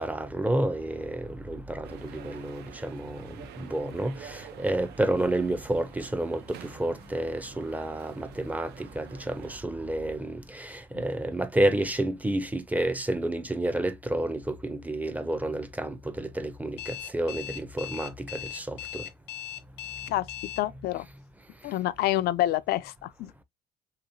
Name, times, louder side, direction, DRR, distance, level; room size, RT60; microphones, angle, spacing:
voice 1, 0.0-19.0, right 1 dB, 10° right, 0.5 m, -30 dB
sound 1, 1.8-9.6, right 9 dB, 75° right, 0.6 m, -48 dB
Alarm, 16.8-20.6, left 12 dB, 90° left, 0.8 m, -38 dB
voice 2, 20.1-21.1 21.6-23.4, left 15 dB, 70° left, 0.4 m, -28 dB
3.1 x 2.9 x 2.6 m
cardioid pair, 110°, 17 cm